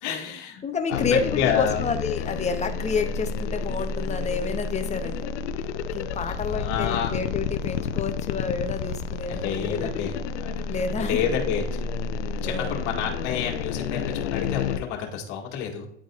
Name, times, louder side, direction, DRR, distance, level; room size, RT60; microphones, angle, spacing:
voice 1, 0.0-0.6 0.9-1.0 1.3-1.8 6.2-7.2 9.3-11.8 12.4-15.9, left 8 dB, 55° left, 0 dB, 1.9 m, -29 dB
voice 2, 0.6-5.4 5.9-10.1 10.7-11.3 12.4-12.8, left 5 dB, 20° left, 7 dB, 0.8 m, -29 dB
sound 1, 0.9-14.8, left 5 dB, 85° left, 0.6 m, -30 dB
10.0 x 3.9 x 2.4 m, 0.76 s
hypercardioid pair, 100°, 34 cm